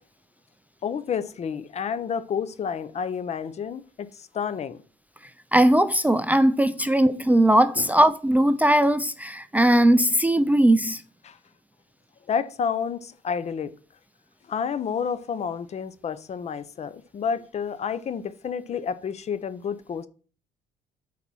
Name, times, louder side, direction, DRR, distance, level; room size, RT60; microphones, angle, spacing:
voice 1, 0.8-4.8 7.8-7.9 11.2-11.4 12.3-13.7 14.5-20.1, left 7 dB, 40° left, 0.7 m, -30 dB
voice 2, 5.5-11.0, right 1 dB, 10° right, 0.4 m, -19 dB
8.3 x 4.2 x 6.1 m
cardioid pair, 110°, 17 cm